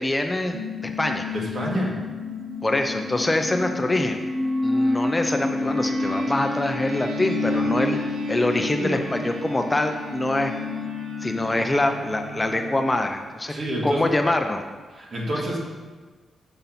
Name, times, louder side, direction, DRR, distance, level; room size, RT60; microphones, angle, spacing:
voice 1, 0.0-1.3 2.6-4.2 4.6-10.5 11.2-13.5 13.8-14.6, left 2 dB, 20° left, 4 dB, 0.5 m, -24 dB
sound 1, 0.5-13.0, left 2 dB, 80° right, 0.7 m, -29 dB
voice 2, 1.3-2.0 8.8-9.1 13.5-14.0 14.9-15.6, right 1 dB, 55° right, -3 dB, 1.8 m, -28 dB
6.9 x 3.7 x 5.8 m, 1.4 s
cardioid pair, 90°, 0 cm